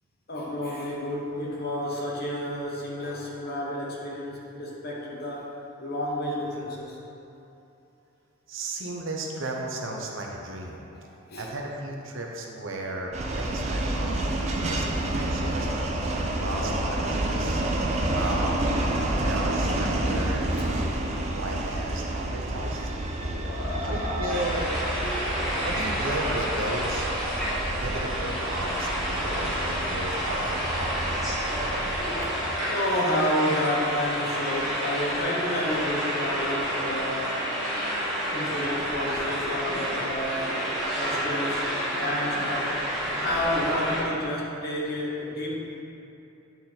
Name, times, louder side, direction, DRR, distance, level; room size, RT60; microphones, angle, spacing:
voice 1, 0.3-7.0 10.9-11.6 16.5-17.0 18.7-19.5 23.3-25.7 27.5-27.6 28.0-28.9 29.2-30.0 31.8-37.4 38.3-42.8 43.1-45.8, left 1 dB, 45° left, -3 dB, 1.1 m, -31 dB
voice 2, 8.5-10.9 11.4-15.7 16.3-17.6 18.1-18.7 19.2-20.6 21.3-22.9 23.8-24.7 25.6-27.1 27.7-31.0, right 2 dB, 60° right, 0 dB, 0.8 m, -34 dB
sound 1, 13.1-32.6, right 1 dB, 30° right, 0.5 m, -29 dB
sound 2, 24.3-44.0, equal, ahead, 1.6 m, -29 dB
9.1 x 4.2 x 4.0 m, 2.8 s
head